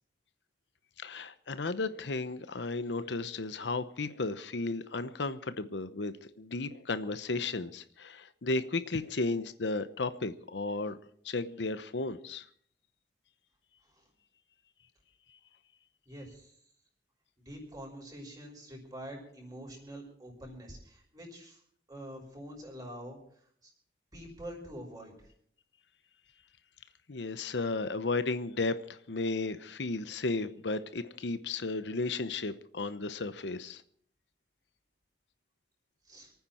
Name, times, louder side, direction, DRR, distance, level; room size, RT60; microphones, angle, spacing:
voice 1, 1.0-11.0 11.2-12.4 27.1-33.8, left 3 dB, 85° left, 0.9 m, -34 dB
voice 2, 16.1-16.5 17.4-21.6 21.9-23.2 23.6-23.7 24.1-25.3 36.0-36.3, equal, 20° right, 6.0 m, -46 dB
28.0 x 9.5 x 4.4 m
head